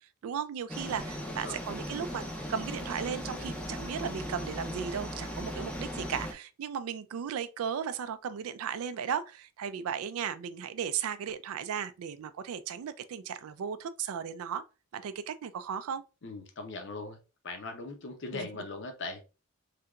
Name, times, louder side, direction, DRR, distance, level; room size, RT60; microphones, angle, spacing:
voice 1, 0.2-2.2 2.5-14.7 14.9-16.0 18.3-18.5, right 7 dB, 70° right, 0.3 m, -36 dB
sound 1, 0.7-6.3, equal, 5° left, 0.5 m, -38 dB
voice 2, 0.8-1.6 16.2-17.2 17.4-19.2, left 3 dB, 55° left, 0.7 m, -40 dB
3.3 x 2.8 x 2.4 m
head